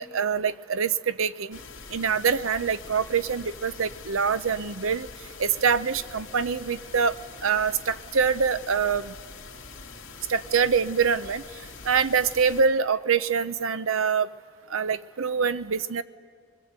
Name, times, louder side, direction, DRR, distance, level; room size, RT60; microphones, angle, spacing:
voice 1, 0.0-1.6 1.9-5.1 5.4-7.1 7.4-9.1 10.3-11.4 11.9-14.3 14.7-16.0, right 6 dB, 85° right, 14 dB, 0.7 m, -25 dB
sound 1, 1.5-12.6, left 4 dB, 75° left, 2.6 m, -44 dB
24.5 x 22.0 x 8.1 m, 2.1 s
head